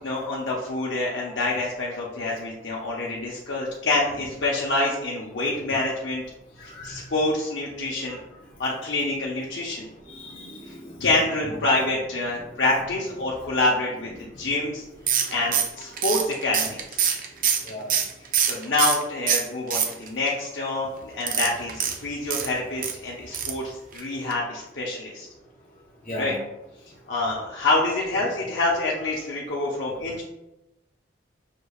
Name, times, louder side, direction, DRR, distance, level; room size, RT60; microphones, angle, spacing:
voice 1, 0.0-6.2 6.6-8.2 8.6-9.9 10.7-14.8 15.2-17.0 18.4-25.3 26.2-26.4 27.1-30.2, left 2 dB, 70° left, -4 dB, 0.7 m, -27 dB
voice 2, 10.1-10.9 17.7-17.9 26.1-26.4, equal, 45° left, -2 dB, 1.3 m, -36 dB
sound 1, 15.1-19.0 19.3-20.3 21.2-22.9 23.3-23.6 23.9-24.0 24.3-24.4, right 8 dB, 45° right, 0.4 m, -24 dB
5.7 x 3.3 x 2.3 m, 0.93 s
head